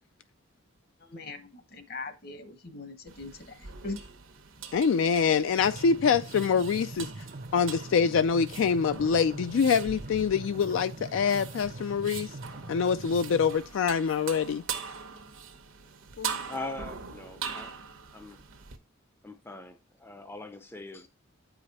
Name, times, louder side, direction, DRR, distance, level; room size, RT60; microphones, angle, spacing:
voice 1, 1.0-4.0, left 3 dB, 50° left, 1.0 m, -41 dB
sound 1, 3.1-18.8, right 6 dB, 80° right, 1.0 m, -42 dB
voice 2, 4.7-7.1 7.5-12.3 12.7-14.6 16.2-16.4, left 6 dB, 70° left, 0.3 m, -25 dB
sound 2, 5.6-13.6, right 2 dB, 45° right, 0.6 m, -42 dB
voice 3, 16.5-17.8 18.1-18.4 19.2-21.1, left 2 dB, 10° left, 0.5 m, -41 dB
8.6 x 5.0 x 4.1 m
head